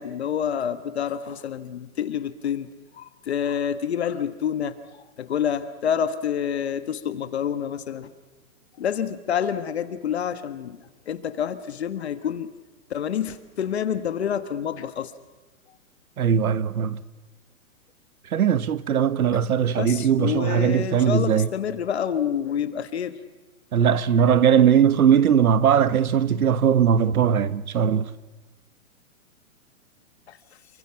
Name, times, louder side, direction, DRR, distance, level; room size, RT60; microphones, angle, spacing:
voice 1, 0.0-2.7 2.9-4.8 5.2-8.1 8.8-10.8 11.1-12.5 12.9-15.1 19.7-23.1 30.3-30.4, left 8 dB, 50° left, 1.6 m, -28 dB
voice 2, 16.2-17.0 18.3-21.5 23.7-28.1, right 8 dB, 90° right, 1.4 m, -20 dB
28.5 x 24.0 x 5.9 m
hypercardioid pair, 175°, 42 cm